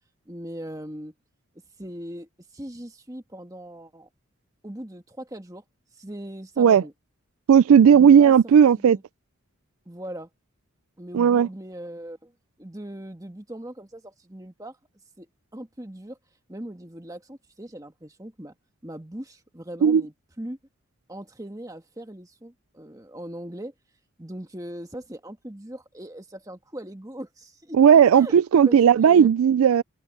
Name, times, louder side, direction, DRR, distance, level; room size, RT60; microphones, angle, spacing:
voice 1, 0.3-1.1 1.8-4.1 4.6-5.6 5.9-6.9 7.9-8.3 8.7-9.0 9.8-10.3 11.0-12.3 12.6-14.8 15.2-15.3 15.5-16.2 16.5-18.5 18.8-20.6 21.1-23.7 24.2-27.8 28.1-28.4 28.6-29.3, right 1 dB, 15° right, 1.5 m, -39 dB
voice 2, 7.5-9.0 11.1-11.5 19.8-20.0 27.7-29.8, right 8 dB, 85° right, 0.3 m, -15 dB
head